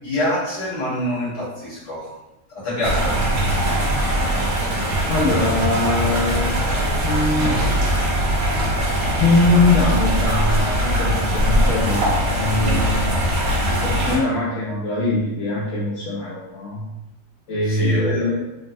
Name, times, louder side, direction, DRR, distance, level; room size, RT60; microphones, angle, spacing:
voice 1, 0.0-2.1 2.5-3.2 12.5-12.9 17.7-18.3, left 1 dB, 30° left, -9 dB, 1.1 m, -26 dB
sound 1, 2.8-14.2, equal, 65° right, 1.1 m, -21 dB
voice 2, 5.1-6.6 7.0-7.8 8.9-16.9 17.5-18.4, left 2 dB, 70° left, -7 dB, 0.7 m, -22 dB
3.2 x 2.1 x 2.5 m, 0.94 s
omnidirectional pair, 1.8 m